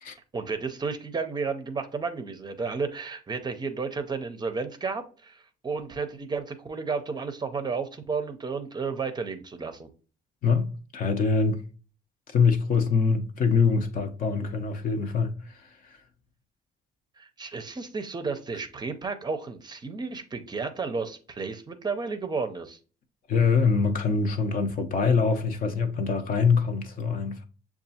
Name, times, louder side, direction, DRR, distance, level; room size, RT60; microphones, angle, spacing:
voice 1, 0.3-9.9 17.2-22.8, right 4 dB, 25° right, 0.5 m, -32 dB
voice 2, 10.4-11.6 12.3-15.7 23.3-27.4, left 5 dB, 55° left, 0.7 m, -24 dB
6.5 x 2.3 x 2.7 m
cardioid pair, 110°, 17 cm